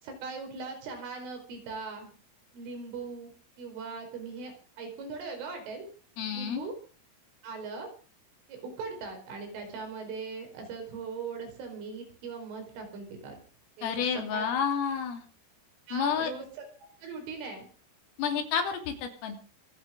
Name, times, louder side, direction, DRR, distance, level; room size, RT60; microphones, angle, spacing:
voice 1, 0.0-2.1 2.5-3.3 3.6-5.9 6.3-6.8 7.4-7.9 8.5-13.4 13.8-14.5 15.9-16.6 17.0-17.7, right 4 dB, 75° right, 4 dB, 7.2 m, -40 dB
voice 2, 6.2-6.6 13.8-15.3 15.9-16.3 18.2-19.4, left 7 dB, 85° left, 5 dB, 5.5 m, -30 dB
25.5 x 8.9 x 5.1 m, 0.38 s
omnidirectional pair, 5.8 m